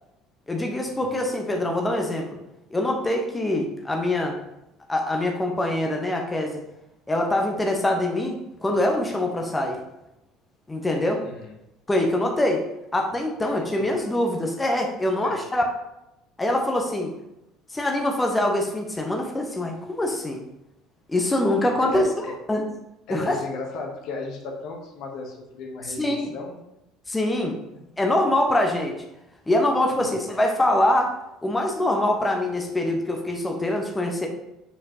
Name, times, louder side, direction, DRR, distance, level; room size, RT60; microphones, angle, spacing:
voice 1, 0.5-2.3 2.7-4.4 4.9-6.6 7.1-9.8 10.7-11.2 11.9-12.6 12.9-15.6 16.4-17.1 17.7-20.4 21.1-22.1 22.5-22.6 23.1-23.4 26.0-26.3 27.1-27.6 28.0-28.9 29.5-34.3, left 1 dB, 15° left, 2 dB, 1.0 m, -24 dB
voice 2, 11.2-11.5 13.4-13.9 15.2-15.4 21.6-22.4 23.1-26.6 29.9-30.1, left 3 dB, 60° left, 1 dB, 1.1 m, -36 dB
7.0 x 4.9 x 2.9 m, 0.89 s
figure-of-eight pair, 60°, 0 cm